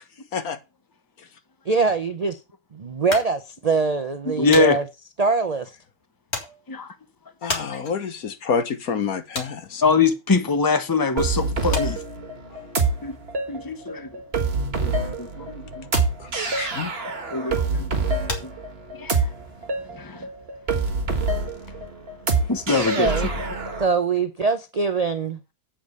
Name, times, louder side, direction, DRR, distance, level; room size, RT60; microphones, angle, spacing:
voice 1, 1.7-2.4 2.7-4.9 5.2-5.7 22.7-23.3 23.8-25.4, right 4 dB, 65° right, 0.4 m, -23 dB
sound 1, 3.1-10.9 11.2-19.3, left 3 dB, 45° left, 2.3 m, -36 dB
voice 2, 4.4-4.8 6.7-6.9 9.8-12.0 13.0-13.1 13.5-14.1 14.8-14.9 15.2-15.8 17.3-17.9 19.0-19.1 20.0-20.2 22.5-23.1, left 4 dB, 15° left, 0.8 m, -22 dB
voice 3, 7.4-9.8 16.2-16.9, left 6 dB, 70° left, 1.6 m, -28 dB
sound 2, 11.2-23.9, right 3 dB, 40° right, 1.7 m, -26 dB
8.7 x 5.2 x 6.5 m
omnidirectional pair, 1.7 m